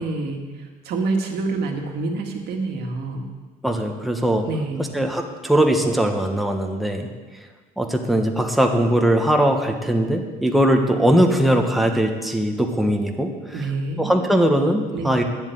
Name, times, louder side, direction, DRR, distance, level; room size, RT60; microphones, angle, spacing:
voice 1, 0.0-3.3 4.5-5.0 13.5-14.2 14.9-15.2, right 3 dB, 75° right, 3 dB, 1.8 m, -27 dB
voice 2, 3.6-4.4 4.8-7.1 7.8-13.6 14.0-15.2, right 1 dB, ahead, 2 dB, 1.3 m, -20 dB
10.0 x 7.2 x 9.2 m, 1.4 s
cardioid pair, 110°, 17 cm